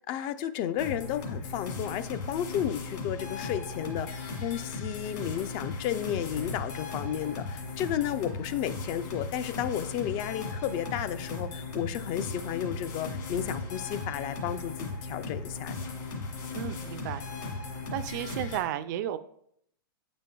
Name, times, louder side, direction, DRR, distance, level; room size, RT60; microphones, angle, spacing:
voice 1, 0.0-15.7, left 10 dB, 40° left, 12 dB, 0.4 m, -33 dB
sound 1, 0.8-18.6, left 3 dB, 55° left, 2.0 m, -37 dB
voice 2, 16.5-17.2 17.9-19.2, right 11 dB, 50° right, 12 dB, 0.4 m, -33 dB
8.8 x 5.1 x 2.3 m, 0.71 s
hypercardioid pair, 115°, 12 cm